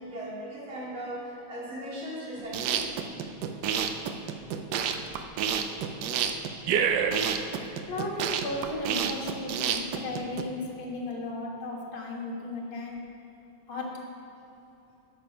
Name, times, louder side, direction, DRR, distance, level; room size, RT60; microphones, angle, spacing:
voice 1, 0.0-2.9 7.8-7.9, equal, 90° right, -7 dB, 3.3 m, -38 dB
sound 1, 2.4-10.4, right 7 dB, 70° right, 1.0 m, -29 dB
voice 2, 7.9-13.0 13.7-13.9, left 2 dB, 90° left, -2 dB, 2.4 m, -35 dB
11.5 x 6.9 x 5.0 m, 2.9 s
omnidirectional pair, 2.2 m